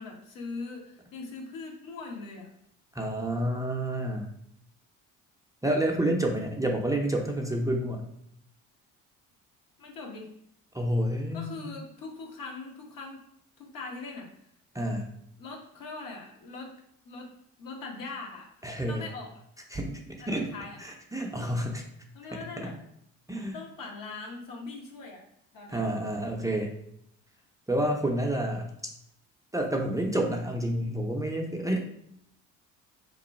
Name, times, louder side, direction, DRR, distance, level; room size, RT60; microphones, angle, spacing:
voice 1, 0.0-2.5 9.8-10.3 11.3-13.2 13.6-14.3 15.4-16.7 17.0-17.3 17.6-18.5 18.9-19.3 20.2-20.8 22.1-22.8 23.5-25.2 25.5-26.0 27.7-27.8, left 3 dB, 65° left, 0 dB, 1.1 m, -41 dB
voice 2, 2.9-4.3 5.6-8.0 10.7-11.7 14.7-15.1 18.6-19.0 19.7-20.5 20.8-21.8 22.6-22.7 23.3-23.6 25.7-26.7 27.7-28.7 29.5-31.8, right 1 dB, 10° right, 0 dB, 0.5 m, -29 dB
3.0 x 2.2 x 4.1 m, 0.73 s
supercardioid pair, 65°, 36 cm